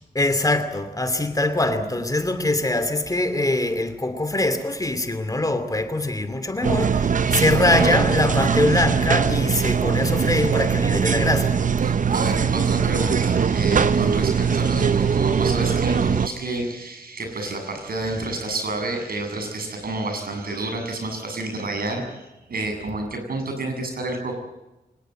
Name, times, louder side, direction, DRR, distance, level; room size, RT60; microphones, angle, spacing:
voice 1, 0.1-11.6, left 2 dB, 20° left, 2.7 m, -23 dB
sound 1, 6.6-16.3, right 6 dB, 55° right, 0.8 m, -21 dB
voice 2, 7.3-8.0 11.8-24.4, right 2 dB, 70° right, 7.6 m, -29 dB
24.0 x 19.5 x 7.7 m
cardioid pair, 75°, 16 cm